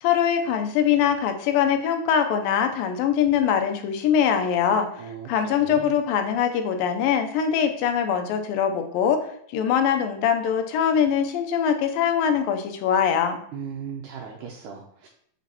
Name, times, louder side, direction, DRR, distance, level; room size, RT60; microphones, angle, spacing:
voice 1, 0.0-4.9 5.3-9.3 9.5-13.4, left 8 dB, 90° left, 6 dB, 2.5 m, -22 dB
voice 2, 5.0-5.9 13.5-15.1, right 6 dB, 75° right, 0 dB, 2.1 m, -37 dB
6.9 x 6.1 x 2.9 m, 0.68 s
omnidirectional pair, 4.0 m